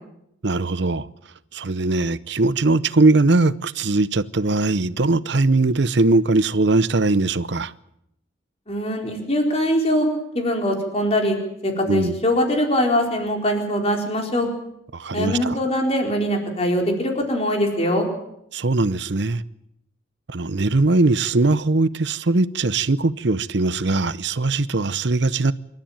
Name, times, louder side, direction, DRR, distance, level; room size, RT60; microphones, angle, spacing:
voice 1, 0.4-1.1 1.5-7.7 11.9-12.2 14.9-15.6 18.5-19.4 20.3-25.5, right 3 dB, 60° right, 0.7 m, -20 dB
voice 2, 8.7-10.1 10.3-11.4 11.6-14.5 15.1-18.1, equal, 30° left, 4.3 m, -22 dB
27.0 x 13.0 x 8.9 m
head